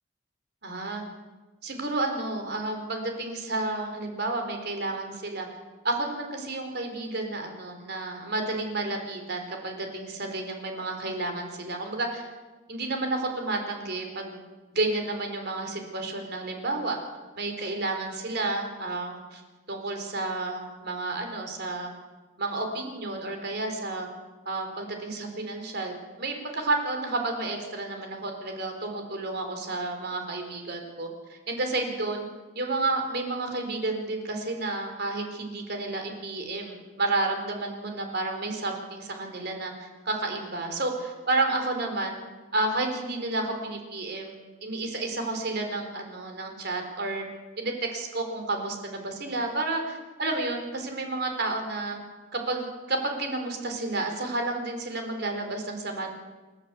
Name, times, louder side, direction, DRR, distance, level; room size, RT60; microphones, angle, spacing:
voice 1, 0.6-1.0 1.6-5.5 5.8-12.3 12.7-14.4 14.7-17.0 17.4-19.4 19.7-21.9 22.4-24.1 24.5-32.2 32.5-42.2 42.5-47.3 47.6-52.0 52.3-56.1, right 2 dB, 50° right, 4 dB, 4.1 m, -31 dB
29.0 x 11.5 x 8.3 m, 1.2 s
head